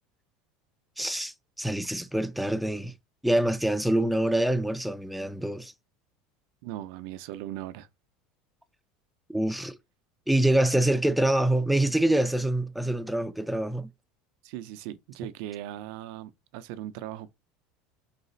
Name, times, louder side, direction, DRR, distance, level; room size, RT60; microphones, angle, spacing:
voice 1, 1.0-2.9 3.2-5.7 9.3-9.8 10.3-13.9, right 1 dB, ahead, 0.4 m, -25 dB
voice 2, 6.6-7.9 14.4-17.3, right 13 dB, 70° right, 0.5 m, -38 dB
4.0 x 2.4 x 3.9 m
cardioid pair, 150°, 3 cm